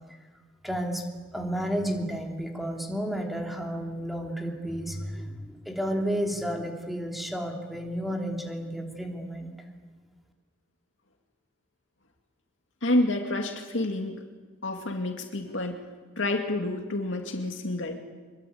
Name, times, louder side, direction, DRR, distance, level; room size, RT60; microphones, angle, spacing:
voice 1, 0.6-1.0 1.3-9.5, equal, ahead, 1 dB, 3.2 m, -32 dB
voice 2, 12.8-14.2 14.6-15.8 16.2-18.0, left 1 dB, 75° left, 3 dB, 2.4 m, -28 dB
25.5 x 22.5 x 8.7 m, 1.4 s
head